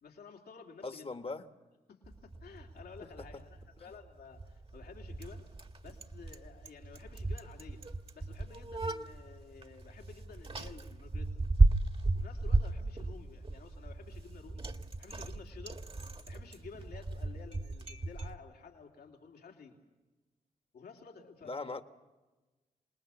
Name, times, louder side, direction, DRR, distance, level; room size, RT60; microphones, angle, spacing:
voice 1, 0.0-1.1 1.9-5.4 5.8-7.8 8.1-11.3 12.1-15.8 16.3-19.8 20.7-21.8, left 5 dB, 80° left, 1 dB, 3.0 m, -52 dB
voice 2, 0.8-1.5 3.2-3.3 21.4-21.8, left 3 dB, 35° left, 8 dB, 1.5 m, -39 dB
Bicycle, 2.0-18.3, right 2 dB, 35° right, 1.8 m, -34 dB
26.5 x 20.0 x 7.1 m, 1.2 s
cardioid pair, 50°, 16 cm